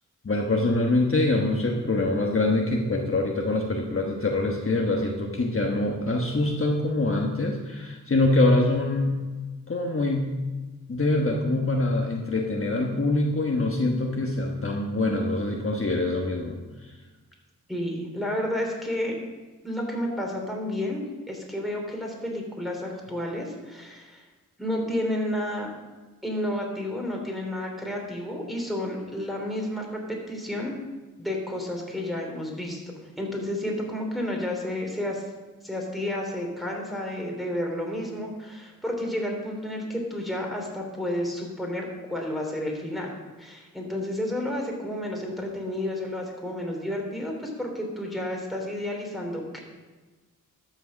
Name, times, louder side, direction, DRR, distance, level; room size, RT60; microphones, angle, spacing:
voice 1, 0.2-9.2 9.7-10.4 10.9-16.6, left 2 dB, 40° left, 0 dB, 1.2 m, -24 dB
voice 2, 17.7-19.1 19.6-24.2 24.6-25.7 26.2-30.7 31.2-32.8 33.2-35.2 35.6-43.1 43.4-49.6, left 1 dB, ahead, -1 dB, 3.1 m, -31 dB
13.0 x 6.5 x 6.3 m, 1.3 s
wide cardioid pair, 70°, 33 cm